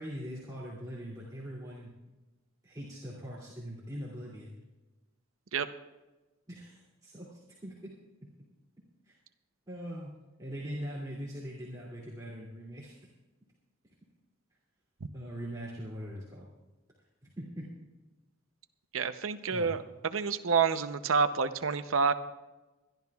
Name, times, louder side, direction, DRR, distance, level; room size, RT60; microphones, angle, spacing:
voice 1, 0.0-1.9 2.6-4.5 6.5-7.9 9.1-9.2 9.7-10.1 10.4-12.9 15.1-16.5 17.4-17.7 19.5-19.7, equal, 20° right, -7 dB, 2.6 m, -41 dB
voice 2, 18.9-19.8 20.0-22.1, right 5 dB, 90° right, 10 dB, 0.7 m, -28 dB
23.5 x 12.0 x 2.4 m, 1.1 s
head